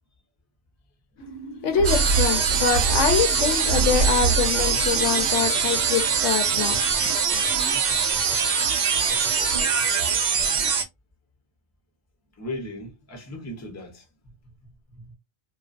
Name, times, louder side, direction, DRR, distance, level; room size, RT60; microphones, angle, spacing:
sound 1, 1.2-7.8, right 3 dB, 90° left, 1.2 m, -43 dB
voice 1, 1.6-7.2, left 7 dB, 70° left, 0.9 m, -25 dB
sound 2, 1.7-6.3 6.6-6.7, right 4 dB, 65° right, 0.8 m, -27 dB
sound 3, 1.8-10.8, right 6 dB, 85° right, 0.4 m, -23 dB
voice 2, 12.3-14.1 14.6-15.1, left 1 dB, 20° left, 0.5 m, -37 dB
2.4 x 2.2 x 2.4 m
omnidirectional pair, 1.4 m